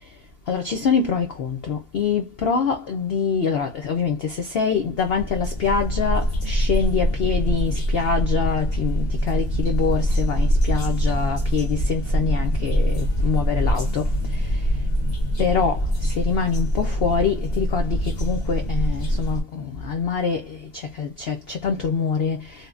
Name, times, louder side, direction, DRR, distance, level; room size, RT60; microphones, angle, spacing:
voice 1, 0.5-14.7 15.4-22.7, left 6 dB, 80° left, 0.5 m, -25 dB
sound 1, 4.9-19.4, equal, 30° left, 1.0 m, -23 dB
3.3 x 2.1 x 2.4 m
omnidirectional pair, 1.6 m